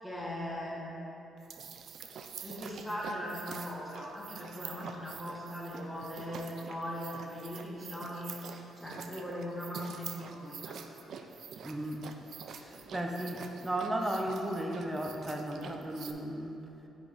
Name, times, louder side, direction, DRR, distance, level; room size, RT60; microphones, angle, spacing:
voice 1, 0.0-0.9 2.4-10.8 12.5-12.9, equal, 5° left, -6 dB, 1.5 m, -40 dB
sound 1, 1.4-16.1, right 6 dB, 65° right, 0.4 m, -46 dB
voice 2, 11.6-12.1 12.6-16.6, right 1 dB, 10° right, 1 dB, 0.6 m, -35 dB
7.8 x 6.1 x 2.6 m, 2.9 s
cardioid pair, 115°, 0 cm